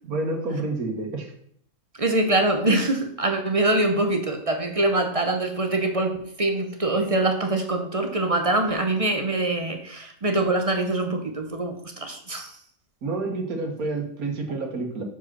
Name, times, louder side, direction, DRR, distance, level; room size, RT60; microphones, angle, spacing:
voice 1, 0.1-1.3 13.0-15.0, right 3 dB, 85° right, 4 dB, 1.8 m, -29 dB
voice 2, 2.0-12.5, right 2 dB, 30° right, 5 dB, 0.7 m, -24 dB
7.1 x 4.8 x 6.0 m, 0.66 s
omnidirectional pair, 1.5 m